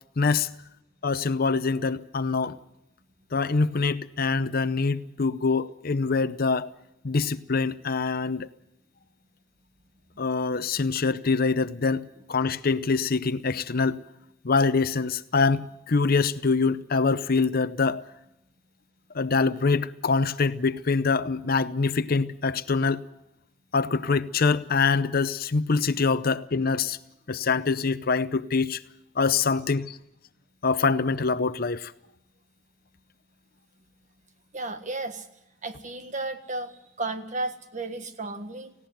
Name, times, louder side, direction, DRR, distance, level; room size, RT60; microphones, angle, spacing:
voice 1, 0.2-0.5 1.0-2.6 3.3-6.7 7.0-8.5 10.2-14.0 14.4-18.0 19.1-23.0 23.7-27.0 27.3-28.8 29.2-30.0 30.6-31.9, left 4 dB, 50° left, 0.7 m, -24 dB
voice 2, 34.5-35.3 35.6-38.7, right 2 dB, 40° right, 1.5 m, -33 dB
18.5 x 16.0 x 9.2 m
head